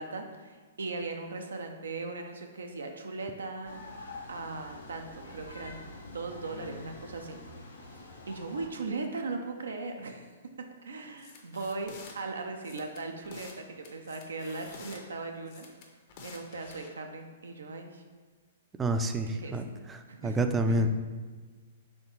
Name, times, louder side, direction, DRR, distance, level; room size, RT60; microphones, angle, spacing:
voice 1, 0.0-3.8 4.3-7.4 7.8-10.3 10.8-15.7 16.2-18.0 19.3-19.6 20.1-20.4 20.7-20.9, right 3 dB, 85° right, 4 dB, 0.4 m, -38 dB
sound 1, 3.6-8.7, left 2 dB, 90° left, 0.7 m, -46 dB
sound 2, 11.2-12.1 12.6-13.6 13.8-15.0 15.5-16.9, left 4 dB, 50° left, 0.7 m, -49 dB
voice 2, 18.8-20.9, right 1 dB, 15° right, 7 dB, 0.3 m, -29 dB
4.2 x 3.3 x 3.0 m, 1.4 s
hypercardioid pair, 130°, 0 cm